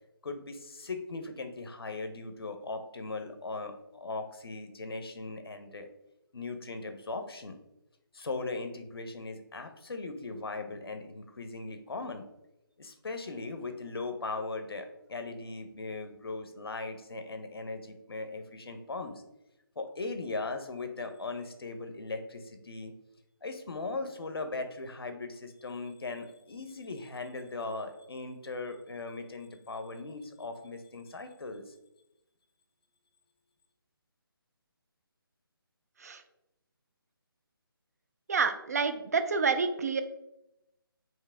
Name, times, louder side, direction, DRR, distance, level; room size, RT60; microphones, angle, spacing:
voice 1, 0.2-5.9 6.3-7.6 8.1-12.2 12.8-19.2 19.8-22.9 23.4-31.7, left 3 dB, 85° left, 7 dB, 0.8 m, -39 dB
voice 2, 38.3-40.0, right 5 dB, 40° right, 9 dB, 0.4 m, -28 dB
4.7 x 3.0 x 3.4 m, 0.90 s
hypercardioid pair, 165°, 12 cm